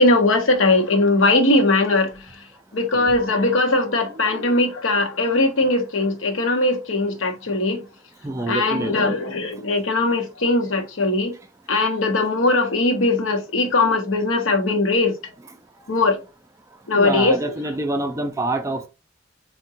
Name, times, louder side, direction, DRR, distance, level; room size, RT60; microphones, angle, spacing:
voice 1, 0.0-2.1 2.7-7.8 8.5-11.3 11.7-15.1 15.9-16.2 16.9-17.4, left 2 dB, 85° left, 0.8 m, -20 dB
voice 2, 8.2-9.2 16.9-18.9, right 2 dB, 15° right, 0.3 m, -27 dB
3.5 x 2.1 x 2.7 m
head